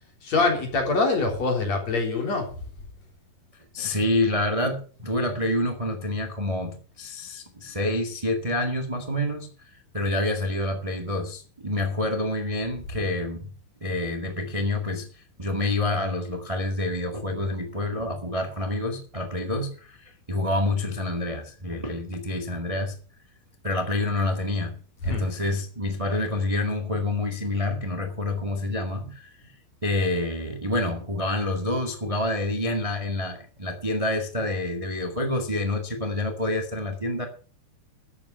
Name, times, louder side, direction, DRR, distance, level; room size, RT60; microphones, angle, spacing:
voice 1, 0.2-2.5 25.0-25.3, left 3 dB, 40° left, 2 dB, 4.8 m, -24 dB
voice 2, 3.7-13.5 13.8-22.9 23.6-24.8 25.0-29.5 29.8-37.2, left 2 dB, 25° right, 4 dB, 0.7 m, -28 dB
13.0 x 8.8 x 6.8 m, 0.39 s
omnidirectional pair, 4.7 m